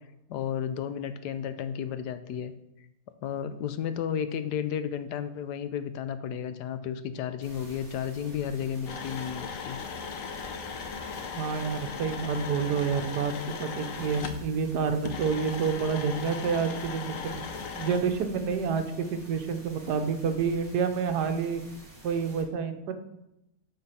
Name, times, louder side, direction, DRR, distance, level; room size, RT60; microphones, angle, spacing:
voice 1, 0.3-2.5 3.2-9.8, left 8 dB, 85° left, 11 dB, 1.3 m, -33 dB
sound 1, 7.4-22.4, equal, 35° right, 3.1 m, -49 dB
sound 2, 8.9-14.4 15.0-18.0, left 6 dB, 60° left, 1.0 m, -37 dB
voice 2, 11.3-17.4 17.8-18.8 19.1-21.6 22.0-22.9, right 6 dB, 80° right, 7 dB, 1.4 m, -28 dB
11.5 x 4.0 x 5.7 m, 0.87 s
omnidirectional pair, 1.7 m